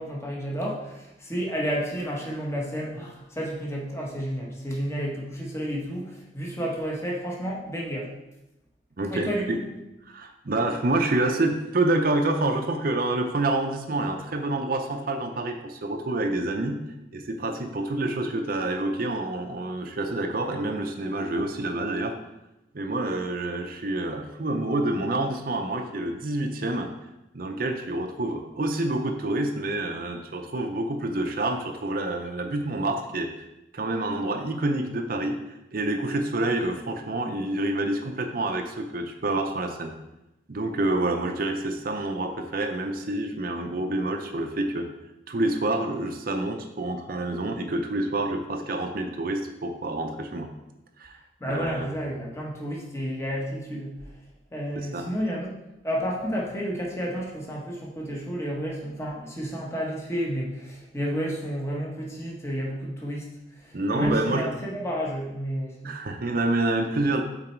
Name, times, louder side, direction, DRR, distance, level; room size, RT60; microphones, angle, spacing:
voice 1, 0.0-8.1 9.1-9.6 51.4-53.9 54.5-55.5 55.8-63.3 63.6-66.0, equal, 15° left, -2 dB, 1.2 m, -31 dB
voice 2, 9.0-9.6 10.1-16.8 17.1-22.1 22.7-26.9 27.3-33.3 33.7-35.4 35.7-39.9 40.5-44.9 45.3-50.5 51.0-51.2 51.5-51.9 54.7-55.0 63.7-64.5 65.8-67.2, right 2 dB, 50° right, 4 dB, 0.6 m, -27 dB
7.8 x 4.1 x 4.5 m, 0.93 s
head